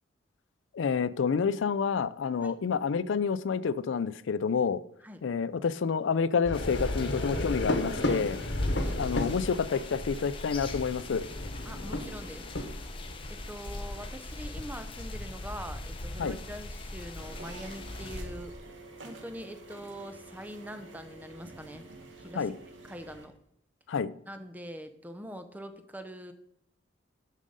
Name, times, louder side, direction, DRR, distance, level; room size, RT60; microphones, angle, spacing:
voice 1, 0.7-4.8 5.2-8.4 9.0-11.2 16.2-16.3 22.4-22.5 23.9-24.1, left 6 dB, 80° left, 0.4 m, -28 dB
sound 1, 6.4-18.6, left 1 dB, 65° left, 1.1 m, -35 dB
sound 2, 6.5-18.2, left 2 dB, 25° left, 0.8 m, -44 dB
voice 2, 8.6-9.0 11.6-12.5 13.3-18.6 19.0-21.8 22.2-22.5 22.8-23.4 24.2-26.3, equal, 10° right, 0.6 m, -43 dB
sound 3, 17.2-23.3, right 2 dB, 75° right, 1.3 m, -48 dB
7.3 x 6.5 x 5.4 m
head